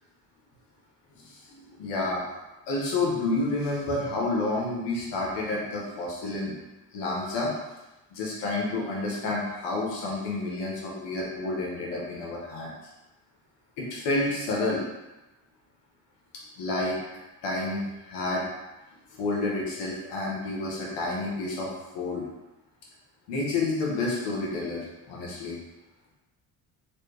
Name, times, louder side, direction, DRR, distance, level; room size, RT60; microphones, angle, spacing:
voice 1, 1.5-2.2 2.7-6.5 6.9-7.5 8.1-12.7 13.8-14.8 16.6-17.0 17.4-18.4 19.2-21.7 21.9-22.3 23.3-25.6, left 2 dB, 90° left, -3 dB, 1.0 m, -29 dB
3.2 x 2.6 x 3.2 m, 1.0 s
supercardioid pair, 70°, 42 cm